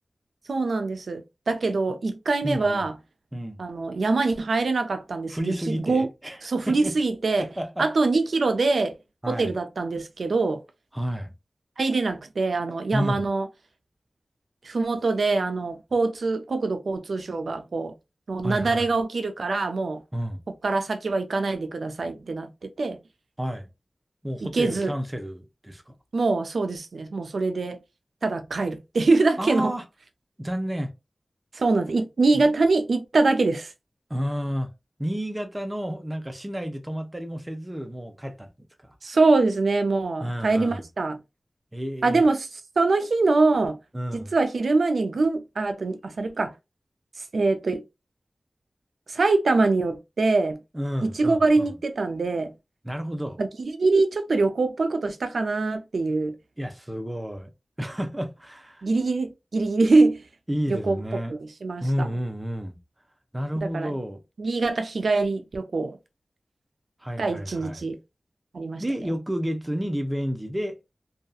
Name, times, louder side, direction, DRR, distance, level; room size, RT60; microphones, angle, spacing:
voice 1, 0.5-3.0 3.6-6.1 6.4-7.5 7.8-9.0 9.3-10.6 11.8-13.5 14.6-17.9 18.3-20.0 20.6-23.0 24.4-24.9 26.1-27.8 28.2-29.7 31.5-33.7 39.0-41.2 42.0-43.8 44.1-46.5 47.3-47.8 49.1-50.6 51.0-52.5 53.4-56.4 58.8-60.2 60.7-61.0 61.3-62.1 63.6-64.0 64.4-66.0 67.2-68.0 68.5-68.8, right 3 dB, 90° right, 0.4 m, -24 dB
voice 2, 2.4-2.9 3.3-3.6 5.3-6.4 6.7-6.9 7.4-7.9 9.2-9.5 10.9-11.3 12.9-13.3 18.4-18.9 20.1-20.4 23.4-23.7 24.2-25.9 29.4-29.8 30.4-30.9 32.3-32.4 34.1-34.7 35.0-38.5 38.8-38.9 40.2-40.9 41.7-42.2 43.9-44.3 50.7-51.7 52.8-53.4 56.6-57.5 57.8-58.8 60.5-61.3 61.8-62.8 63.3-64.2 67.0-67.9 68.8-70.8, equal, 20° right, 0.6 m, -30 dB
2.6 x 2.3 x 2.3 m
wide cardioid pair, 55°, 0 cm